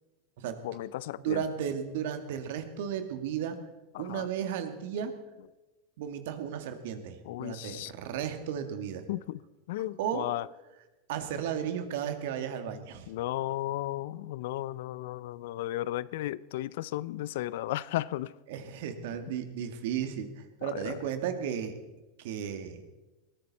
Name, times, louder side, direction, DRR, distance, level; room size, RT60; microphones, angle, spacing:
voice 1, 0.6-1.4 3.9-4.3 7.2-7.9 9.1-9.4 9.7-10.5 13.1-18.3 20.6-21.0, left 15 dB, 70° left, 0.5 m, -34 dB
voice 2, 1.2-3.6 4.0-5.1 6.0-9.0 10.0-10.2 11.1-13.1 18.5-21.8 22.2-22.8, right 8 dB, 70° right, 2.0 m, -34 dB
21.5 x 14.5 x 4.2 m
hypercardioid pair, 90°, 0 cm